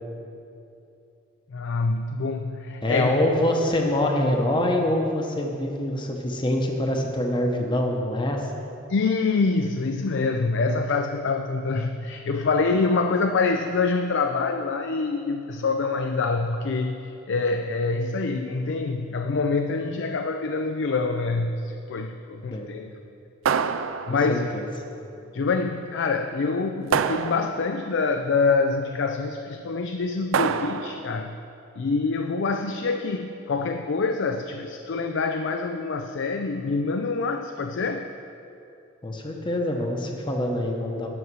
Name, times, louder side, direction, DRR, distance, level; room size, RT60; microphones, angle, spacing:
voice 1, 1.5-3.1 8.9-17.0 17.3-22.9 24.1-24.5 25.3-31.4 31.8-38.1, left 4 dB, 60° left, 6 dB, 0.4 m, -25 dB
voice 2, 2.8-8.5 22.5-22.7 24.1-24.7 39.0-41.1, left 1 dB, 25° left, 1 dB, 0.9 m, -25 dB
sound 1, 23.4-24.5 26.9-27.9 30.3-31.2, right 6 dB, 70° right, 0.4 m, -26 dB
11.0 x 6.3 x 6.2 m, 2.7 s
head